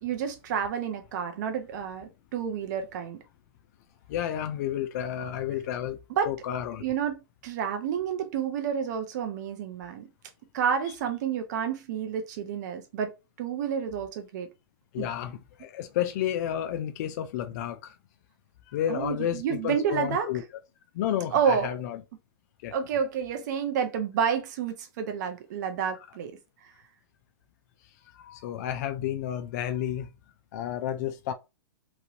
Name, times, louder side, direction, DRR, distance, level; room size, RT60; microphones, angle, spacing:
voice 1, 0.0-3.2 6.1-6.3 6.8-10.1 10.5-13.1 13.4-14.5 15.0-15.1 18.9-20.3 21.3-21.7 22.7-26.3, right 7 dB, 45° right, 0.5 m, -29 dB
voice 2, 4.1-6.0 6.3-6.9 14.9-17.9 18.7-20.4 20.9-22.0 22.6-22.7 28.1-30.1 30.5-31.3, left 10 dB, 45° left, 0.4 m, -31 dB
3.0 x 2.5 x 2.7 m
hypercardioid pair, 155°, 13 cm